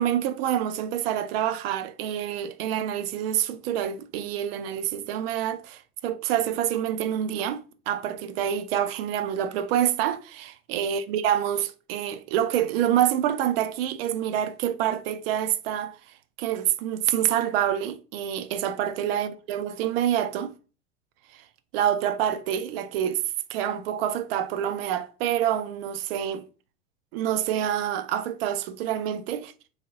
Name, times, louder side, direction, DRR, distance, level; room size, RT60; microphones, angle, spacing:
voice 1, 0.0-16.0 16.4-20.5 21.3-21.4 21.7-23.2 23.5-26.4 27.1-29.5, right 10 dB, 45° right, 0.5 m, -27 dB
3.5 x 3.3 x 2.6 m
figure-of-eight pair, 90°, 41 cm